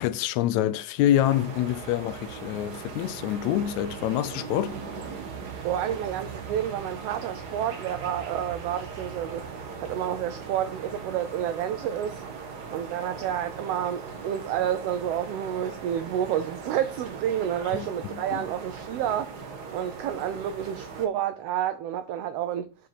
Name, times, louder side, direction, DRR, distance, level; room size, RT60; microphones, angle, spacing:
voice 1, 0.0-4.8 17.7-17.9 18.3-18.4, left 12 dB, 80° left, 1.9 m, -26 dB
sound 1, 1.2-21.1, right 5 dB, 55° right, 1.1 m, -39 dB
voice 2, 5.6-12.2 12.7-22.7, right 10 dB, 85° right, 1.4 m, -30 dB
5.8 x 5.0 x 5.7 m
omnidirectional pair, 3.3 m